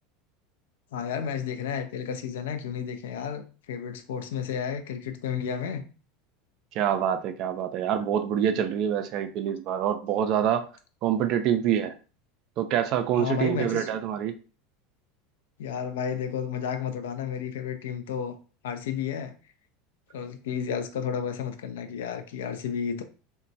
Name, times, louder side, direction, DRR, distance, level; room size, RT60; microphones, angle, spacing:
voice 1, 0.9-5.8 13.1-13.9 15.6-18.4 18.6-19.3 20.1-23.0, left 7 dB, 65° left, 0.4 m, -32 dB
voice 2, 6.7-10.7 11.0-11.9 12.6-14.3, right 9 dB, 45° right, 0.3 m, -26 dB
2.9 x 2.1 x 2.6 m
figure-of-eight pair, 75°, 0 cm